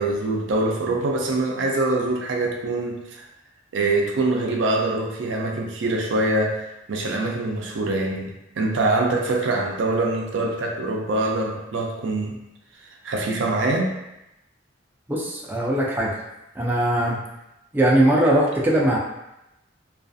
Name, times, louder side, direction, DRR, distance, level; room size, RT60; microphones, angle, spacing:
voice 1, 0.0-3.3 3.7-6.6 6.9-8.3 8.6-12.4 13.0-13.9, right 2 dB, 75° right, 0 dB, 0.4 m, -24 dB
voice 2, 15.1-16.1 16.6-17.2 17.7-19.0, right 1 dB, 10° right, -4 dB, 0.3 m, -20 dB
2.4 x 2.3 x 2.5 m, 0.91 s
head